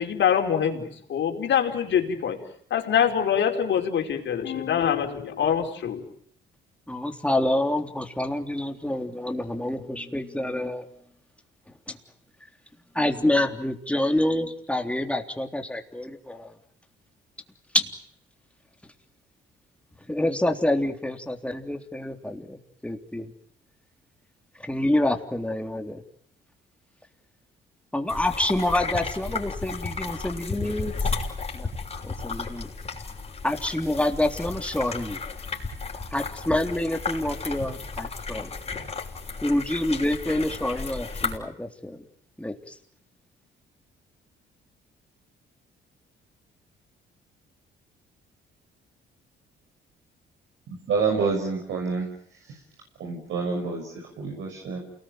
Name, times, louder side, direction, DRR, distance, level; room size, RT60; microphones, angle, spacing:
voice 1, 0.0-2.4 2.7-6.0, left 8 dB, 65° left, 3 dB, 4.9 m, -24 dB
voice 2, 6.9-10.8 11.9-12.0 12.9-16.5 17.7-17.9 20.1-23.3 24.6-26.0 27.9-30.9 31.5-31.7 32.0-32.7 33.4-35.2 36.1-38.5 39.4-42.0 42.4-42.7, left 1 dB, 5° left, 4 dB, 3.5 m, -27 dB
sound 1, 28.1-41.4, left 4 dB, 30° left, 6.1 m, -33 dB
voice 3, 50.9-52.1 53.0-54.8, right 4 dB, 75° right, 0 dB, 6.3 m, -27 dB
29.0 x 20.0 x 9.3 m, 0.66 s
cardioid pair, 90°, 20 cm